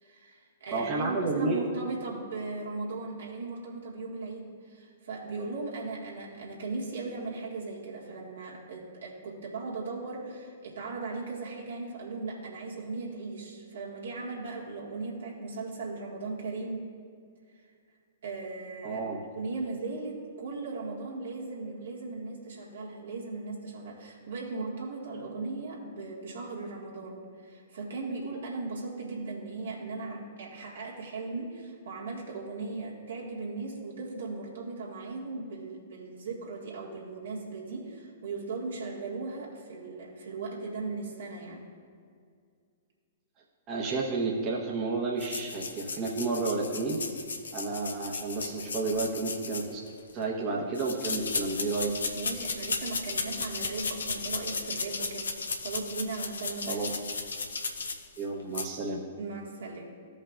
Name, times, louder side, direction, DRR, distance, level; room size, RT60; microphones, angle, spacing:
voice 1, 0.0-16.8 18.2-19.0 19.3-41.6 52.1-55.3 55.6-56.9 59.2-59.9, right 3 dB, 70° right, -4 dB, 1.9 m, -38 dB
voice 2, 0.7-1.8 18.8-19.2 43.7-47.0 47.5-49.8 50.1-51.9 56.7-56.9 58.2-59.0, right 3 dB, 30° right, -3 dB, 1.0 m, -31 dB
sound 1, 45.2-50.1 50.7-58.2 58.5-58.7, left 4 dB, 75° left, 0.7 m, -35 dB
15.0 x 5.4 x 2.5 m, 2.2 s
figure-of-eight pair, 115°, 0 cm